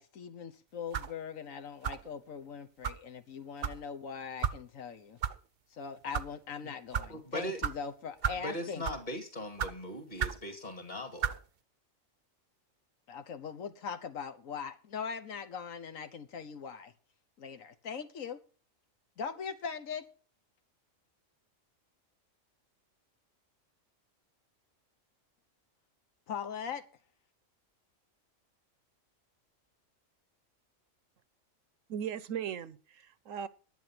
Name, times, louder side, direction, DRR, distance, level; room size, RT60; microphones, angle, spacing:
voice 1, 0.0-5.2 5.7-8.8 13.1-16.9 17.4-18.4 19.2-20.0 26.3-26.8, left 6 dB, 80° left, 1.4 m, -41 dB
sound 1, 0.9-1.2 1.8-2.1 2.8-3.0 3.6-3.8 4.4-4.6 5.2-5.3 6.0-6.3 6.9-7.1 7.6-7.8 8.2-8.5 8.8-9.1 9.6-9.7 10.2-10.4 11.2-11.4, right 8 dB, 55° right, 0.8 m, -33 dB
voice 2, 7.1-7.6 8.3-11.4, equal, 35° left, 2.5 m, -39 dB
voice 3, 31.9-33.5, right 8 dB, 75° right, 1.1 m, -38 dB
11.0 x 9.1 x 6.0 m
omnidirectional pair, 1.4 m